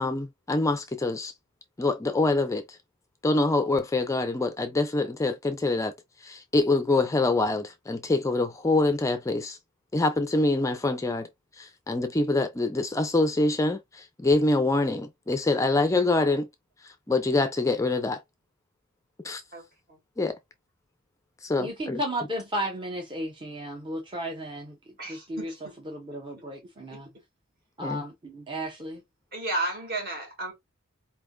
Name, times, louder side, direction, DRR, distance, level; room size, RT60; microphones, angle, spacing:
voice 1, 0.0-1.3 1.8-2.8 3.2-5.9 6.2-9.6 9.9-11.3 11.6-16.5 16.8-18.2 19.2-19.4 20.2-20.3 21.4-22.0 27.8-28.0, left 2 dB, 15° left, 0.4 m, -25 dB
voice 2, 19.5-20.0 25.0-25.7 26.9-27.0 29.3-30.5, right 2 dB, 45° right, 2.0 m, -33 dB
voice 3, 21.6-24.8 25.1-25.5 25.8-27.1 27.8-29.0, equal, 25° right, 0.8 m, -34 dB
4.4 x 3.3 x 2.2 m
head